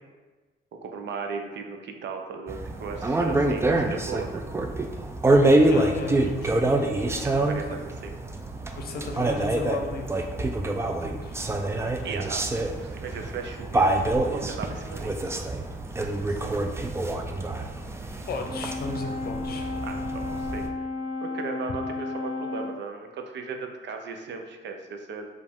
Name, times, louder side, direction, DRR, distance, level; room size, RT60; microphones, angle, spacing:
voice 1, 0.8-4.4 7.2-8.1 12.0-13.9 14.1-15.1 19.8-20.7 21.2-25.3, right 5 dB, 65° right, 4 dB, 0.6 m, -37 dB
sound 1, 2.5-20.7, right 2 dB, 15° right, 0.3 m, -26 dB
voice 2, 5.7-6.5 7.1-7.2 7.7-7.8 8.8-10.3 11.0-11.4 16.2-16.5 18.1-19.8, left 3 dB, 50° left, 3 dB, 0.7 m, -35 dB
Brass instrument, 18.5-22.9, left 3 dB, 40° right, 1.3 m, -33 dB
4.8 x 2.5 x 3.5 m, 1.3 s
cardioid pair, 90°, 20 cm